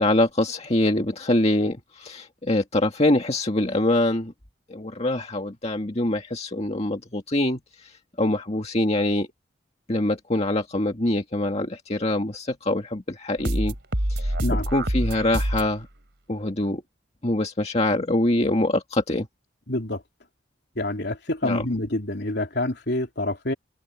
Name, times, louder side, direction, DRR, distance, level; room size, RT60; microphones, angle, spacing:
voice 1, 0.0-4.3 4.7-7.9 8.2-9.3 9.9-13.7 14.1-15.9 16.3-16.8 17.2-19.3 21.4-21.6, left 1 dB, 35° left, 1.9 m, -24 dB
sound 1, 13.4-15.8, right 1 dB, 65° right, 3.5 m, -26 dB
voice 2, 19.7-20.0 20.8-23.5, left 1 dB, 60° left, 3.7 m, -27 dB
head